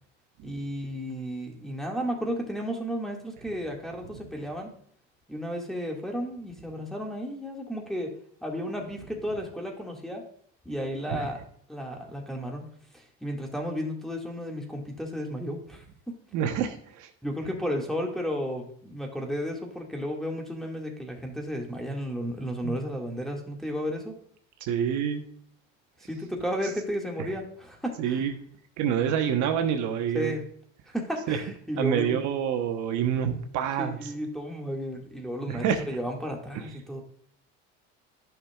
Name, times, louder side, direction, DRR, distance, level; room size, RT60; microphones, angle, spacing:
voice 1, 0.4-4.7 5.3-8.1 8.4-10.2 10.7-11.4 11.7-12.6 12.9-16.2 17.2-24.2 26.0-28.2 30.1-30.4 30.9-32.2 33.8-37.0, equal, ahead, 1 dB, 1.9 m, -33 dB
voice 2, 16.3-17.1 22.6-22.8 24.6-25.3 28.0-28.3 28.8-30.3 31.3-31.4 31.8-34.1 35.5-35.8, right 8 dB, 60° right, 5 dB, 1.1 m, -27 dB
11.0 x 5.9 x 2.4 m, 0.63 s
supercardioid pair, 100°, 33 cm